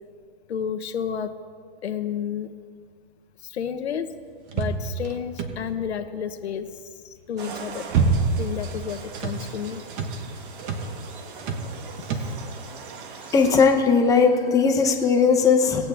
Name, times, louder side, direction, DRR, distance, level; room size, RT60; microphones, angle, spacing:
voice 1, 0.5-1.4 1.8-2.5 3.4-4.1 4.5-7.9 8.4-9.8, left 8 dB, 85° left, 8 dB, 0.9 m, -31 dB
sound 1, 4.5-5.9 7.4-8.5 8.8-9.4 9.9-10.2 10.6-10.9 11.4-11.7 12.0-12.4, right 4 dB, 35° right, 1.2 m, -26 dB
sound 2, 7.4-13.7, right 5 dB, 55° right, 1.3 m, -40 dB
voice 2, 13.3-15.9, left 5 dB, 10° left, 4 dB, 0.8 m, -18 dB
19.0 x 8.2 x 3.4 m, 2.2 s
hypercardioid pair, 145°, 32 cm